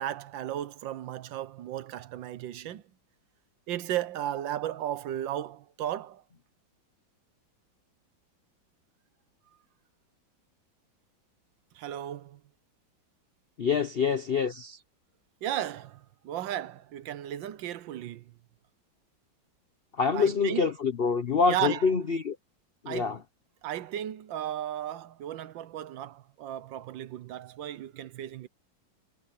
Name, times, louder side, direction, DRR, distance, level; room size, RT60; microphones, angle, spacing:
voice 1, 0.0-2.8 3.7-6.2 11.7-12.4 15.4-18.3 20.1-20.6 21.5-21.9 22.9-23.1 23.6-28.5, right 12 dB, 75° right, 1.5 m, -35 dB
voice 2, 13.6-14.8 19.9-22.4 22.8-23.2, left 5 dB, 75° left, 0.5 m, -26 dB
omnidirectional pair, 2.1 m